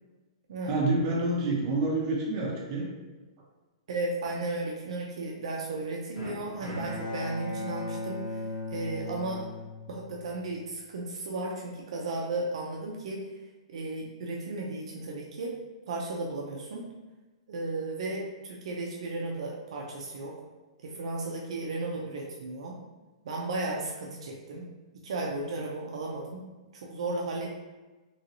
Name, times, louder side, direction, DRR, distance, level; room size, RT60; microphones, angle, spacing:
voice 1, 0.7-2.9, right 2 dB, 30° right, -3 dB, 0.7 m, -28 dB
voice 2, 3.9-8.4 8.7-9.4 9.9-13.2 13.7-15.5 15.9-16.9 17.5-20.3 20.8-22.8 23.2-24.7 25.0-26.4 26.7-27.6, right 2 dB, 60° right, -2 dB, 0.5 m, -34 dB
Bowed string instrument, 6.2-10.4, left 2 dB, 50° left, 1.1 m, -37 dB
3.1 x 2.7 x 2.8 m, 1.2 s
hypercardioid pair, 165°, 3 cm